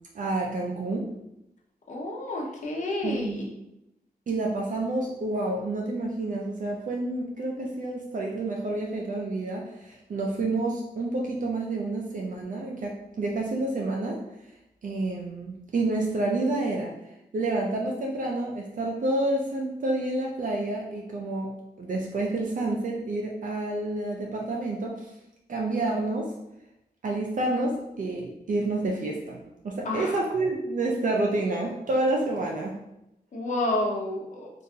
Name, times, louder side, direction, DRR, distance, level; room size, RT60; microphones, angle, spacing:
voice 1, 0.1-1.1 3.0-3.5 4.3-14.2 14.8-16.9 17.3-25.1 25.5-26.3 27.0-32.7, right 2 dB, 55° right, -1 dB, 0.4 m, -29 dB
voice 2, 1.9-3.5 29.8-30.2 33.3-34.5, left 2 dB, 50° left, -1 dB, 0.7 m, -30 dB
3.7 x 2.5 x 2.7 m, 0.86 s
wide cardioid pair, 140°, 16 cm